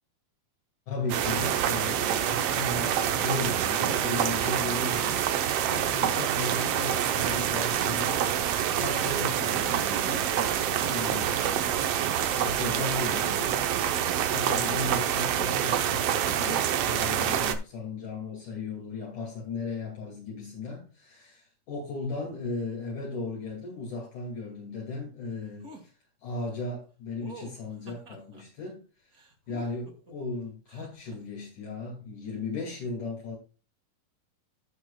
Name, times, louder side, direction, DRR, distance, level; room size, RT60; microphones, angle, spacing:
voice 1, 0.9-5.2 5.6-8.2 8.8-11.7 12.4-13.6 14.3-25.9 26.2-29.2 29.5-33.4, left 3 dB, 65° left, 3.8 m, -36 dB
sound 1, 1.1-17.6, right 9 dB, 80° right, 1.4 m, -27 dB
sound 2, 25.6-25.9 27.2-28.4 29.1-30.1 30.7-31.2, right 2 dB, 30° right, 2.0 m, -48 dB
15.5 x 6.3 x 2.3 m
omnidirectional pair, 3.9 m